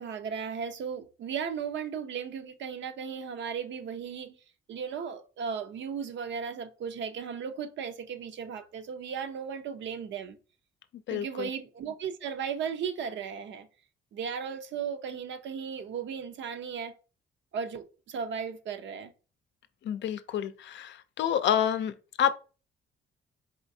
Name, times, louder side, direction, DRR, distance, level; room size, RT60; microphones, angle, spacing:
voice 1, 0.0-4.4 4.7-10.4 11.1-13.7 14.1-16.9 17.5-19.1, right 7 dB, 65° right, 0.7 m, -36 dB
voice 2, 11.1-11.5 19.8-22.3, left 9 dB, 65° left, 0.5 m, -28 dB
4.3 x 3.2 x 2.7 m
cardioid pair, 90°, 20 cm